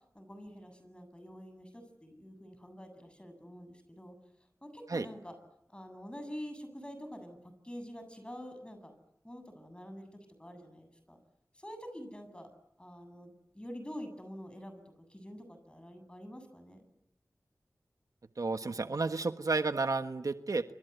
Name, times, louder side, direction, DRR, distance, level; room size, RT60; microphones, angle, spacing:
voice 1, 0.1-4.1 4.6-5.4 5.7-8.9 9.2-10.1 10.4-11.2 11.5-12.5 12.8-14.8 15.1-16.8, equal, 15° left, 8 dB, 7.7 m, -47 dB
voice 2, 18.4-20.6, right 3 dB, 70° right, 9 dB, 1.3 m, -31 dB
27.0 x 25.5 x 8.2 m, 0.82 s
wide cardioid pair, 45°, 6 cm